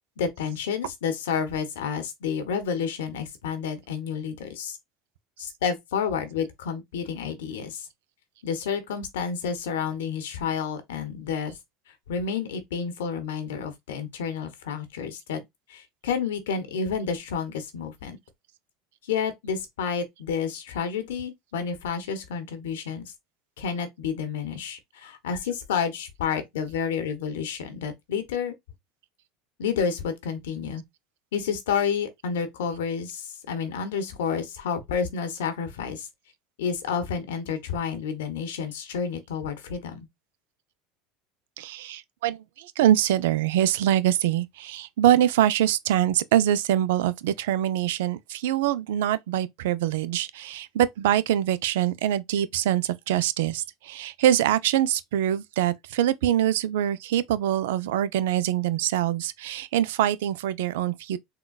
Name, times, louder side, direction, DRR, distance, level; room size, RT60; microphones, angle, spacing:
voice 1, 0.2-4.8 5.4-7.9 8.4-11.5 12.1-15.4 15.7-18.2 19.1-23.1 23.6-28.5 29.6-30.8 31.3-36.1 36.6-40.1, left 6 dB, 90° left, 0.8 m, -30 dB
voice 2, 41.6-61.2, right 11 dB, 80° right, 0.3 m, -24 dB
3.8 x 2.1 x 2.3 m
supercardioid pair, 110°, 0 cm